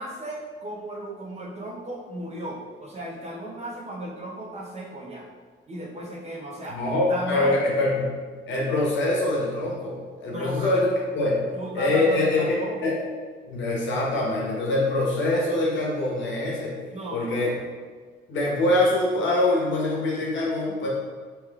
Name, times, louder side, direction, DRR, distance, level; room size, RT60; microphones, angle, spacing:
voice 1, 0.0-5.2 5.7-6.8 7.1-7.6 10.3-10.8 11.5-12.8 16.9-17.6, right 1 dB, 35° right, -3 dB, 0.7 m, -35 dB
voice 2, 6.7-8.0 8.5-10.9 11.1-11.4 11.7-12.5 12.8-13.0 13.4-16.7 17.1-17.5 18.3-20.9, left 2 dB, 70° left, -4 dB, 0.9 m, -24 dB
3.2 x 3.0 x 2.3 m, 1.6 s
cardioid pair, 90°, 20 cm